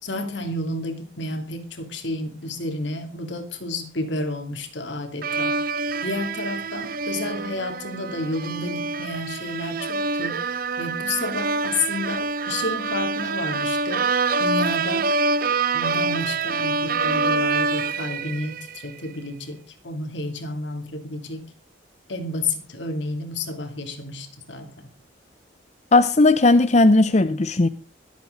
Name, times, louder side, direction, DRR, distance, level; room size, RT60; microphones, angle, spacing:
voice 1, 0.0-5.5 6.0-14.1 14.4-15.1 15.7-19.6 19.8-21.5 22.1-24.9, left 2 dB, 70° left, 2.8 m, -31 dB
sound 1, 5.2-18.9, right 4 dB, 45° right, 0.6 m, -26 dB
voice 2, 25.9-27.7, left 2 dB, 35° left, 0.6 m, -16 dB
25.0 x 8.4 x 3.9 m
head